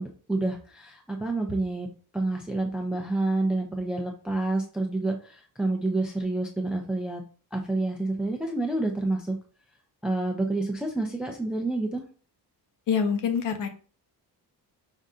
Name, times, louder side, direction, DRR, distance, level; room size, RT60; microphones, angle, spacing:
voice 1, 0.0-1.9 2.1-7.2 7.5-9.4 10.0-12.0, right 2 dB, ahead, 2 dB, 0.3 m, -28 dB
voice 2, 12.9-13.7, left 6 dB, 55° left, 6 dB, 0.8 m, -25 dB
5.4 x 2.5 x 3.6 m, 0.38 s
cardioid pair, 180°, 39 cm